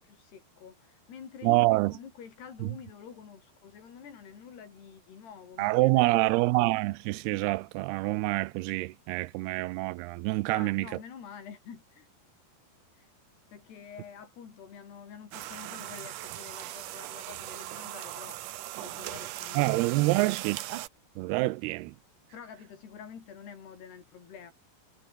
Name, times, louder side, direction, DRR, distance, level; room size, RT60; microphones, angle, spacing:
voice 1, 0.0-6.5 10.4-12.1 12.9-13.1 13.5-20.4 22.3-24.5, left 7 dB, 85° left, 6.0 m, -48 dB
voice 2, 1.4-1.9 2.6-2.7 5.6-10.9 19.6-20.6 21.2-22.0, right 21 dB, 85° right, 2.6 m, -26 dB
sound 1, 15.3-20.9, right 14 dB, 70° right, 2.2 m, -39 dB
omnidirectional pair, 4.6 m